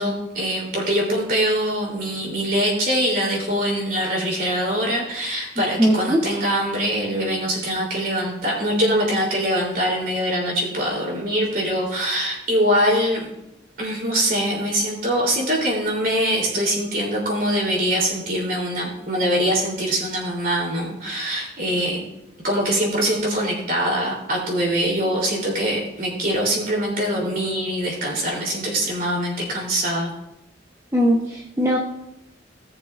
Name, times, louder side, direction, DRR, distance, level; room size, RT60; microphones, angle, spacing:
voice 1, 0.0-13.3 13.8-22.0 22.4-30.1, equal, 50° right, -3 dB, 3.5 m, -23 dB
voice 2, 5.8-6.2 30.9-31.8, equal, 15° right, -3 dB, 0.9 m, -19 dB
18.5 x 6.8 x 2.6 m, 0.87 s
head